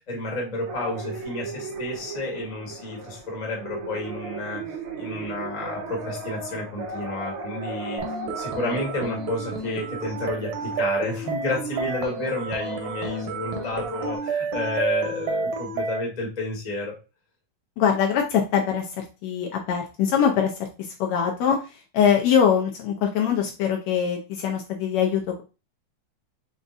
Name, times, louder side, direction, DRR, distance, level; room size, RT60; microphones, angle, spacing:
voice 1, 0.1-4.6 4.9-8.0 8.3-16.9, left 2 dB, 20° left, -2 dB, 1.0 m, -31 dB
sound 1, 0.7-14.2, right 3 dB, 60° right, 1.6 m, -36 dB
sound 2, 8.0-16.0, right 4 dB, 75° right, 2.1 m, -30 dB
voice 2, 17.8-25.4, left 8 dB, 75° left, 1 dB, 1.8 m, -23 dB
5.2 x 3.6 x 2.6 m, 0.30 s
omnidirectional pair, 3.4 m